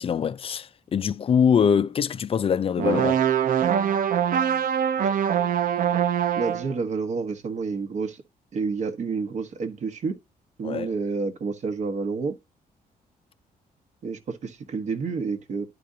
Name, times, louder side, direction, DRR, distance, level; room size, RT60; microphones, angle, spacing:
voice 1, 0.0-3.2 10.6-10.9, left 7 dB, 40° left, 0.4 m, -23 dB
sound 1, 2.8-6.7, right 9 dB, 65° right, 0.8 m, -23 dB
voice 2, 6.4-8.2 8.5-10.2 10.6-12.4 14.0-15.6, right 4 dB, 50° right, 1.3 m, -29 dB
11.0 x 5.0 x 2.7 m
wide cardioid pair, 160°, 15 cm